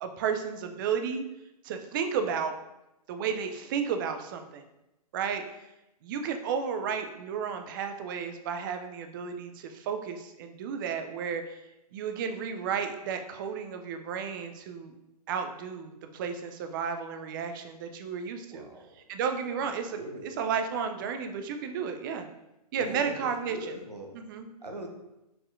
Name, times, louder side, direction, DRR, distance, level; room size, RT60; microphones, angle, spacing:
voice 1, 0.0-1.2 1.6-2.5 3.1-4.6 5.1-5.4 6.0-11.6 11.9-14.9 15.3-18.7 19.1-22.3 22.7-23.7 24.1-24.5, right 6 dB, 30° right, 7 dB, 0.4 m, -33 dB
voice 2, 18.5-18.9 20.0-20.2 22.7-24.1 24.6-24.9, right 1 dB, 90° right, 2 dB, 0.8 m, -41 dB
4.4 x 4.2 x 2.5 m, 0.92 s
figure-of-eight pair, 125°, 20 cm